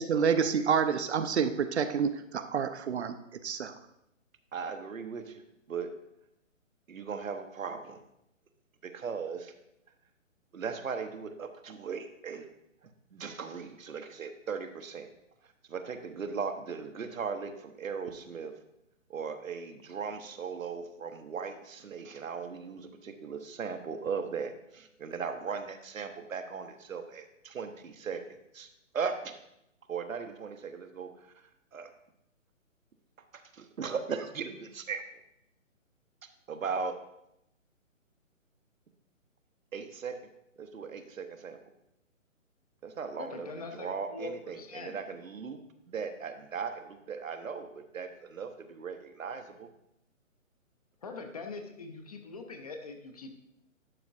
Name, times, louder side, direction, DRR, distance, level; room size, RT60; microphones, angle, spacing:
voice 1, 0.0-3.7, right 6 dB, 55° right, 10 dB, 0.5 m, -28 dB
voice 2, 4.5-5.9 6.9-8.0 8.8-9.5 10.5-12.5 13.1-15.1 15.7-18.6 19.1-28.7 28.9-29.4 29.9-31.1 31.4-31.9 33.3-35.0 36.5-37.0 39.7-40.2 40.6-41.6 42.8-43.5 43.7-45.6 45.9-49.7, right 5 dB, 75° right, 7 dB, 0.9 m, -38 dB
voice 3, 43.2-45.0 51.0-53.3, left 3 dB, 30° left, 4 dB, 0.6 m, -42 dB
11.0 x 5.1 x 2.5 m, 0.82 s
figure-of-eight pair, 140°, 40 cm